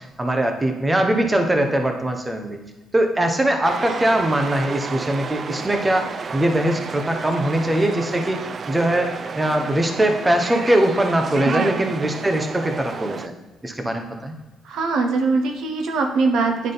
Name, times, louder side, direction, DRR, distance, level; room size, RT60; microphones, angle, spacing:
voice 1, 0.0-2.6 2.9-8.4 8.7-13.3 13.6-14.3, right 1 dB, 15° right, 4 dB, 0.9 m, -21 dB
sound 1, 3.6-13.3, right 5 dB, 45° right, 0.3 m, -31 dB
voice 2, 14.6-16.7, right 3 dB, 80° right, 4 dB, 0.8 m, -22 dB
9.8 x 3.6 x 3.9 m, 1.1 s
cardioid pair, 90°, 0 cm